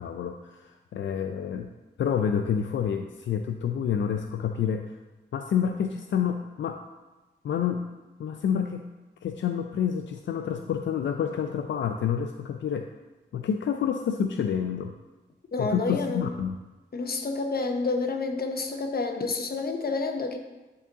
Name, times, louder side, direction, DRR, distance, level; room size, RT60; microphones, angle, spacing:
voice 1, 0.0-1.7 2.0-5.0 5.3-6.8 7.4-7.9 8.2-8.9 9.2-12.9 13.3-14.9 15.6-16.6, left 8 dB, 80° left, 6 dB, 0.4 m, -28 dB
voice 2, 15.5-16.3 16.9-20.4, left 3 dB, 55° left, 5 dB, 0.9 m, -29 dB
10.0 x 4.0 x 3.6 m, 1.1 s
cardioid pair, 65°, 19 cm